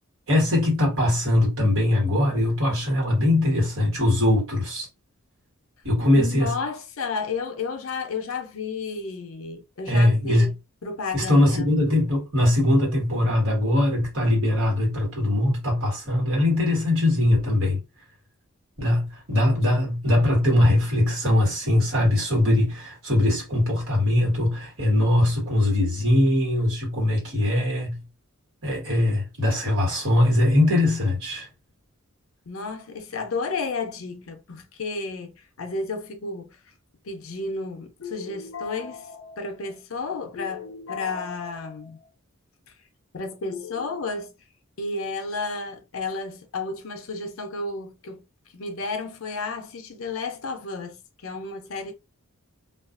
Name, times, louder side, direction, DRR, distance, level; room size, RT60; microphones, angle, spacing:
voice 1, 0.3-4.9 5.8-6.5 9.9-10.5 11.1-17.8 18.8-28.0 28.6-31.5, left 1 dB, 75° right, 1.4 m, -21 dB
voice 2, 6.1-10.6 10.8-11.7 19.5-19.9 32.5-36.6 37.0-42.1 43.1-44.3 44.8-48.2 48.5-51.9, left 4 dB, 70° left, 0.5 m, -32 dB
2.4 x 2.3 x 2.4 m
head